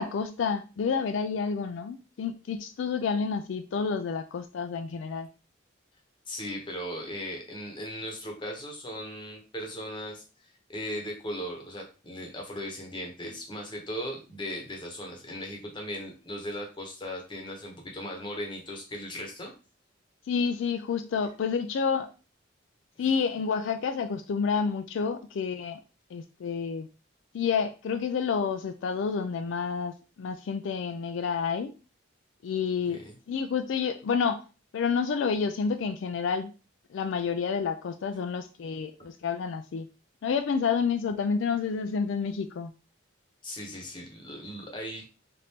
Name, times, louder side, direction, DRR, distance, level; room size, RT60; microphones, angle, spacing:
voice 1, 0.0-5.3 20.3-22.1 23.0-25.8 26.1-26.9 27.3-31.7 32.4-34.4 34.7-36.5 36.9-39.9 40.2-42.7, left 6 dB, 70° left, 0.3 m, -29 dB
voice 2, 6.3-10.2 10.7-19.5 32.9-33.2 43.4-45.0, equal, 25° left, 0.9 m, -38 dB
4.2 x 2.6 x 3.4 m
head